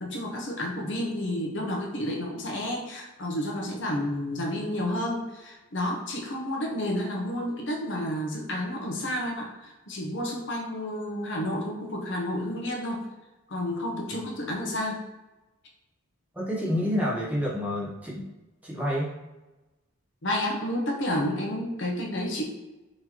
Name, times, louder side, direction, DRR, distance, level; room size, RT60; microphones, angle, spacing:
voice 1, 0.0-13.0 13.5-15.0 20.2-22.4, left 1 dB, 60° left, 0 dB, 0.7 m, -30 dB
voice 2, 16.4-18.2 18.6-19.1, equal, 5° right, -5 dB, 0.7 m, -28 dB
3.9 x 2.9 x 2.9 m, 1.1 s
head